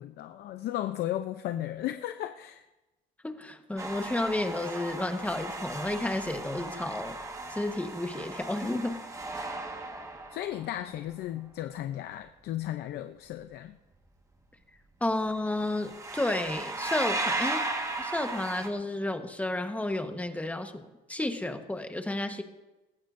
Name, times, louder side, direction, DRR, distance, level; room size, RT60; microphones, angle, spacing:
voice 1, 0.0-2.6 10.3-13.7, left 13 dB, 70° left, 8 dB, 0.6 m, -35 dB
voice 2, 3.2-7.2 7.5-9.0 15.0-17.7 18.0-22.4, left 1 dB, 10° left, 6 dB, 1.3 m, -32 dB
sound 1, 3.8-10.9 15.1-15.4 15.7-18.7, right 2 dB, 20° right, 1.6 m, -36 dB
19.0 x 14.5 x 2.6 m, 1.0 s
cardioid pair, 110°, 17 cm